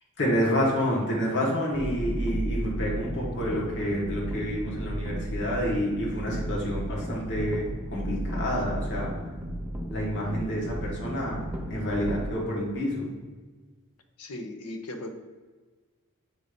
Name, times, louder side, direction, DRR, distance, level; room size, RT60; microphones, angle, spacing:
voice 1, 0.2-9.1 9.9-11.4 11.7-13.1, equal, 55° left, -3 dB, 1.6 m, -28 dB
sound 1, 1.7-12.3, equal, 5° right, 0.5 m, -34 dB
voice 2, 14.2-15.1, left 1 dB, 85° left, 5 dB, 0.8 m, -37 dB
7.5 x 2.7 x 5.0 m, 1.4 s
head